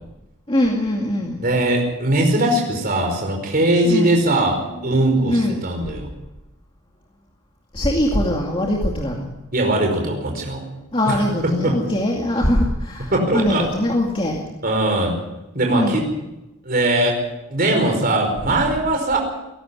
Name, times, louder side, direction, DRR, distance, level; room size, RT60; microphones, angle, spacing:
voice 1, 0.5-1.4 3.8-4.3 4.8-4.9 5.2-5.7 7.7-9.3 10.9-14.5 15.7-16.1, left 1 dB, 25° left, -1 dB, 2.4 m, -22 dB
voice 2, 1.4-6.1 9.5-10.6 11.1-11.2 11.4-11.8 13.1-13.6 14.6-15.1 15.5-16.1 16.6-17.2 17.5-19.2, right 1 dB, 40° right, 1 dB, 5.1 m, -20 dB
22.5 x 12.0 x 9.9 m, 0.97 s
head